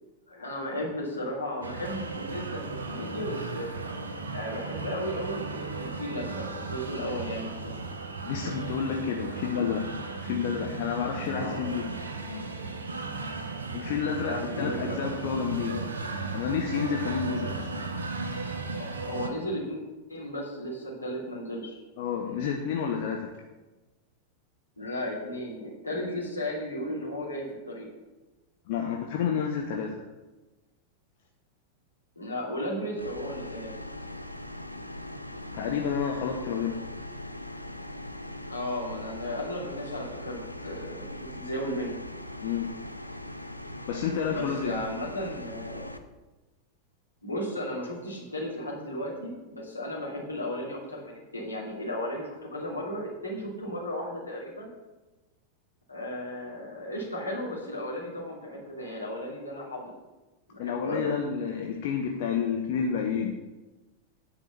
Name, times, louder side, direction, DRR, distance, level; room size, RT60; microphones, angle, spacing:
voice 1, 0.3-3.7 4.3-7.8 11.3-11.6 14.2-15.2 15.7-15.9 18.8-19.8 20.1-21.8 24.8-27.9 32.2-33.7 38.5-42.0 44.2-45.9 47.2-54.7 55.9-59.9 60.5-61.1, left 1 dB, 80° left, -4 dB, 2.6 m, -35 dB
sound 1, 1.6-19.3, right 3 dB, 70° right, 0.9 m, -36 dB
voice 2, 8.2-9.8 10.2-11.8 13.7-15.8 16.3-17.7 22.0-23.3 28.7-30.0 35.5-36.9 42.4-42.7 43.9-44.7 60.6-63.3, left 7 dB, 50° left, 1 dB, 0.9 m, -30 dB
sound 2, 33.0-46.0, left 1 dB, 90° right, 0.5 m, -40 dB
9.6 x 4.9 x 6.8 m, 1.1 s
figure-of-eight pair, 90°, 0 cm